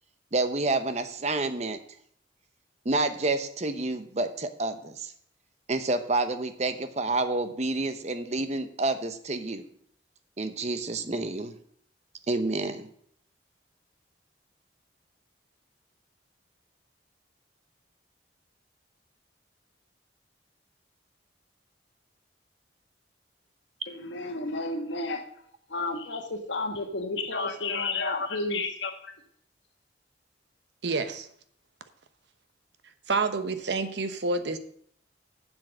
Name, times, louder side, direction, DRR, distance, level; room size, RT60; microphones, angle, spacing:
voice 1, 0.3-1.8 2.8-5.1 5.7-9.6 10.4-11.5 12.3-12.9, right 2 dB, 35° right, 0.7 m, -29 dB
voice 2, 23.9-25.2 25.7-29.1, left 3 dB, 80° left, 1.4 m, -31 dB
voice 3, 30.8-31.3 33.1-34.6, right 3 dB, 70° right, 0.9 m, -28 dB
7.6 x 7.4 x 6.4 m
head